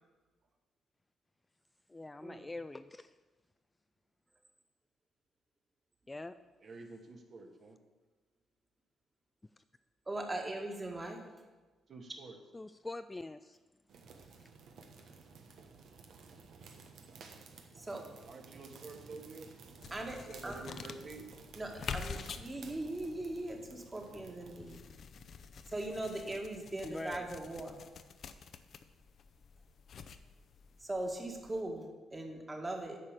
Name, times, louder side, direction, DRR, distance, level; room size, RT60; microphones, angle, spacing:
voice 1, 1.9-3.1 6.1-6.4 12.5-13.6 26.8-27.3, left 2 dB, 15° left, 11 dB, 0.3 m, -44 dB
voice 2, 6.6-7.8 11.9-12.4 18.3-19.5 20.1-21.3, right 3 dB, 50° right, 2 dB, 1.6 m, -49 dB
voice 3, 10.1-11.3 17.7-18.1 19.9-20.6 21.5-24.8 25.7-27.8 30.8-33.0, right 1 dB, 20° right, 2 dB, 1.8 m, -40 dB
sound 1, 13.9-24.8, right 4 dB, 70° right, 1.2 m, -55 dB
sound 2, 19.8-31.6, left 6 dB, 55° left, 0.6 m, -48 dB
9.6 x 5.0 x 7.4 m, 1.2 s
cardioid pair, 90°, 0 cm